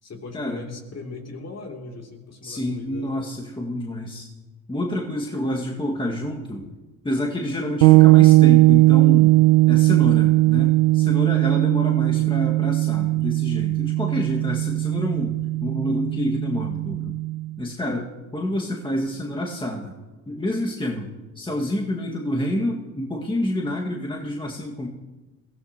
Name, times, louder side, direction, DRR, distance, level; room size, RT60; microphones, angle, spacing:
voice 1, 0.0-3.2 12.1-12.3 17.8-18.1, left 3 dB, 35° left, 2 dB, 2.9 m, -39 dB
voice 2, 2.4-4.3 4.7-6.7 7.0-9.3 9.7-17.2 17.6-18.1 18.3-20.0 20.3-21.1 21.4-24.9, left 1 dB, 10° left, -1 dB, 1.9 m, -28 dB
sound 1, 7.8-17.5, right 19 dB, 90° right, 0.6 m, -18 dB
21.5 x 15.5 x 3.0 m, 1.2 s
hypercardioid pair, 70°, 43 cm